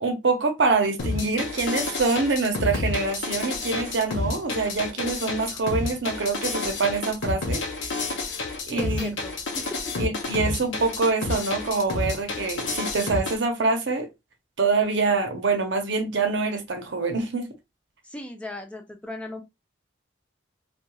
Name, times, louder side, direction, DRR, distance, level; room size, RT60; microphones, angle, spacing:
voice 1, 0.0-7.6 8.7-9.2 10.0-14.1 14.6-17.5, right 3 dB, 65° right, 0.7 m, -25 dB
sound 1, 1.0-13.3, left 3 dB, 70° left, 0.7 m, -30 dB
voice 2, 8.7-9.3 9.7-9.8 18.0-19.4, left 1 dB, 5° left, 0.4 m, -36 dB
2.9 x 2.3 x 2.2 m
head